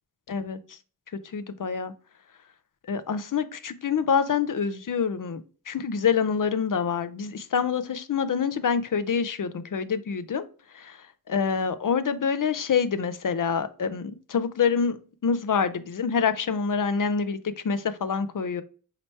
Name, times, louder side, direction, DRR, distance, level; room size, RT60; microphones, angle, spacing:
voice 1, 0.3-0.6 1.3-1.9 2.9-10.5 10.7-11.0 11.3-17.4 17.6-18.6, left 6 dB, 60° left, 12 dB, 0.5 m, -26 dB
4.4 x 2.9 x 3.1 m, 0.38 s
wide cardioid pair, 60°, 36 cm